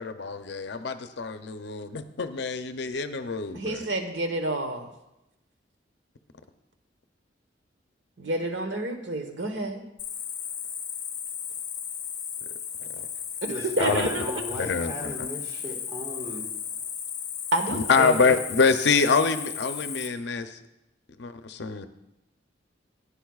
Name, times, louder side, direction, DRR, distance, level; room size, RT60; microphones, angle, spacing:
voice 1, 0.0-3.9 12.8-13.1 13.8-14.1 14.5-15.3 17.7-20.6 21.2-21.9, left 4 dB, 65° left, 9 dB, 0.6 m, -26 dB
voice 2, 3.5-4.9 8.2-9.8 13.4-14.2 17.5-18.1, right 2 dB, 80° right, 5 dB, 1.2 m, -29 dB
Cricket, 10.0-20.1, left 8 dB, 40° left, 1.2 m, -35 dB
voice 3, 13.5-16.4, left 1 dB, 20° right, -1 dB, 1.7 m, -35 dB
15.0 x 9.9 x 2.4 m, 0.91 s
head